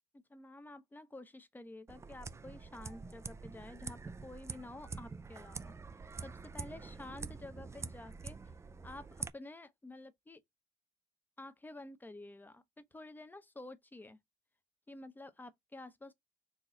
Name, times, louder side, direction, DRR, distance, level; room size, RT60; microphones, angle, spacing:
voice 1, 0.1-5.7 6.2-8.4 8.8-10.4 11.4-14.2 14.9-16.1, left 2 dB, 10° left, 0.7 m, -50 dB
sound 1, 1.9-9.3, right 4 dB, 15° right, 0.4 m, -46 dB
4.1 x 3.1 x 3.7 m
cardioid pair, 110°, 17 cm